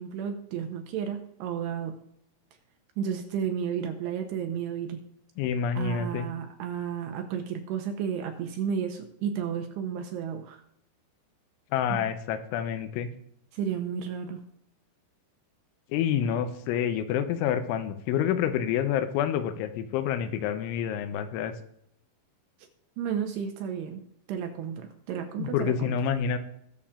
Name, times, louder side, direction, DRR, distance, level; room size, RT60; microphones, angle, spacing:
voice 1, 0.0-2.0 3.0-5.0 5.8-10.6 11.9-12.1 13.5-14.4 23.0-24.0 24.3-25.9, right 8 dB, 75° right, 5 dB, 2.7 m, -32 dB
voice 2, 5.4-6.3 11.7-13.1 15.9-21.5 25.4-26.4, left 8 dB, 85° left, 9 dB, 3.1 m, -28 dB
20.5 x 7.1 x 2.5 m, 0.73 s
omnidirectional pair, 5.4 m